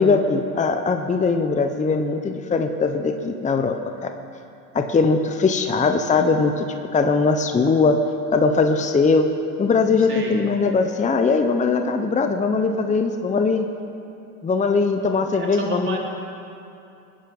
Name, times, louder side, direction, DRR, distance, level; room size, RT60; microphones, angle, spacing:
voice 1, 0.0-3.7 4.0-4.1 4.7-6.6 6.9-8.0 8.3-9.3 9.6-13.7 14.4-16.0, left 4 dB, 15° left, 6 dB, 0.9 m, -20 dB
voice 2, 15.3-16.0, right 3 dB, 25° right, -2 dB, 3.6 m, -30 dB
20.0 x 10.5 x 5.4 m, 2.6 s
supercardioid pair, 100°, 43 cm